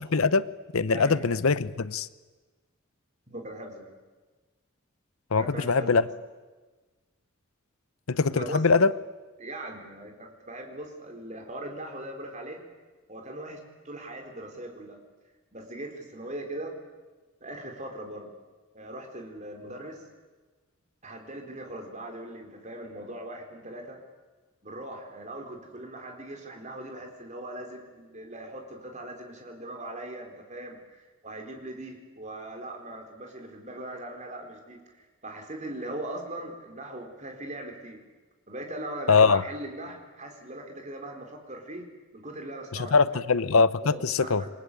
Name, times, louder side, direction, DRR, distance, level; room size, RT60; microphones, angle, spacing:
voice 1, 0.1-0.5 0.7-2.1 5.3-6.0 8.1-8.9 39.1-39.4 42.7-44.4, left 4 dB, 75° left, 16 dB, 0.8 m, -22 dB
voice 2, 0.9-1.3 3.3-4.0 5.4-6.0 8.3-8.6 9.4-12.6 13.1-15.0 15.5-16.8 17.4-18.3 18.7-20.0 21.0-24.0 24.6-38.0 38.5-41.8 42.1-43.2 43.8-44.5, right 1 dB, 35° right, 3 dB, 4.2 m, -40 dB
28.0 x 22.5 x 8.5 m, 1.3 s
head